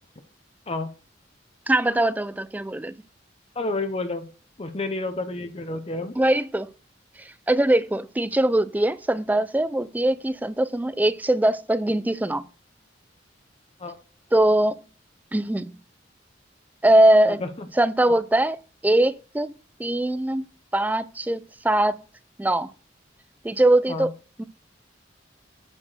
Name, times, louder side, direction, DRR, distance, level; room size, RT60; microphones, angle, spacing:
voice 1, 1.7-3.0 6.2-6.7 7.2-12.4 14.3-14.8 15.3-15.7 16.8-17.4 17.8-18.6 18.8-19.5 19.8-20.5 20.7-22.0 22.4-22.7 23.4-24.1 24.4-24.5, right 1 dB, 10° right, 0.4 m, -21 dB
voice 2, 3.5-4.3 4.6-6.2 13.8-14.0 17.3-17.7 18.1-18.2 23.9-24.1, left 2 dB, 35° left, 0.7 m, -30 dB
8.7 x 4.4 x 6.4 m
head